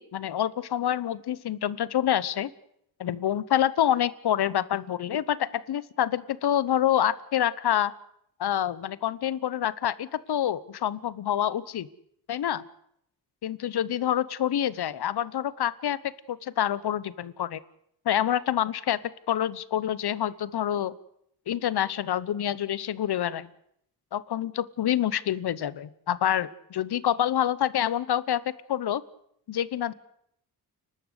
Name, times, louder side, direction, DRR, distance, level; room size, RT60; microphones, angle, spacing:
voice 1, 0.0-2.5 3.0-7.9 8.4-11.9 12.3-12.6 13.4-16.0 16.3-17.6 18.0-19.0 19.3-20.9 21.5-23.5 24.1-28.4 28.7-29.0 29.5-29.9, left 11 dB, 75° left, 18 dB, 1.1 m, -27 dB
29.5 x 13.0 x 8.2 m, 0.73 s
cardioid pair, 85°, 40 cm